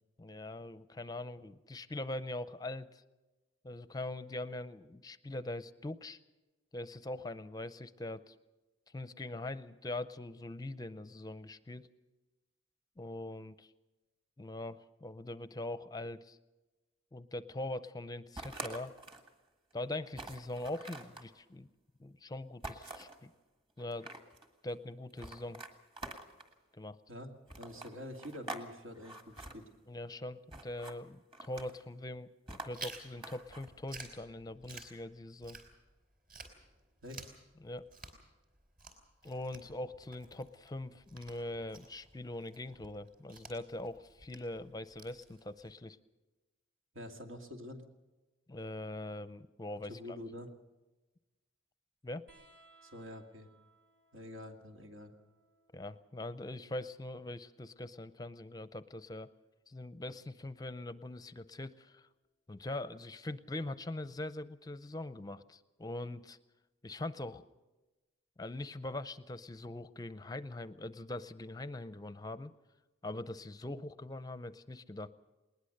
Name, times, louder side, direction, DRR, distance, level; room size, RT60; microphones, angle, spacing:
voice 1, 0.2-3.0 3.6-6.2 6.7-8.3 8.9-11.9 13.0-13.7 14.4-16.4 17.1-18.9 19.7-21.7 22.0-23.3 23.8-24.1 24.6-25.6 26.7-27.0 29.9-35.6 37.6-37.9 39.2-46.0 48.5-50.2 52.0-52.3 55.7-59.3 59.7-62.1 62.5-66.4 66.8-67.4 68.4-72.5 73.0-75.1, left 1 dB, 20° left, 14 dB, 0.6 m, -42 dB
sound 1, 18.4-19.3 19.7-19.8 20.1-21.3 22.6-23.2 23.8-24.5 25.2-26.5 27.5-28.7 28.9-29.5 30.5-31.0 31.3-31.8 32.5-33.7, right 2 dB, 25° right, 1.7 m, -46 dB
voice 2, 27.6-29.7 37.0-37.2 46.9-47.8 49.9-50.5 52.8-53.5 54.1-55.1, left 1 dB, 80° right, 3 dB, 2.4 m, -46 dB
Chewing mastication, 32.7-36.0 36.3-45.7, right 3 dB, 45° right, 3.8 m, -52 dB
sound 2, 52.3-59.3 60.7-61.5 62.8-62.9, right 2 dB, 65° right, 5.3 m, -68 dB
20.0 x 20.0 x 6.6 m, 1.1 s
head